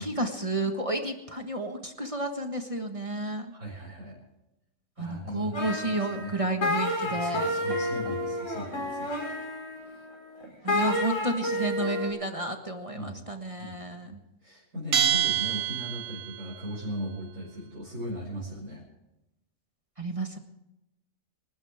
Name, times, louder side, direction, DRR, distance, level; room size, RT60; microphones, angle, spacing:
voice 1, 0.0-3.5 5.0-7.6 10.6-14.2 20.0-20.4, right 2 dB, 25° right, 4 dB, 1.5 m, -31 dB
voice 2, 3.5-4.2 5.0-5.6 6.1-6.4 7.0-9.1 10.6-10.8 12.9-13.2 13.6-18.8, equal, 75° right, -6 dB, 6.5 m, -38 dB
sound 1, 5.5-12.1, left 1 dB, 65° left, 5.3 m, -30 dB
Bell, 14.9-16.5, right 11 dB, 55° right, 0.9 m, -26 dB
27.0 x 13.0 x 3.6 m, 0.92 s
omnidirectional pair, 1.4 m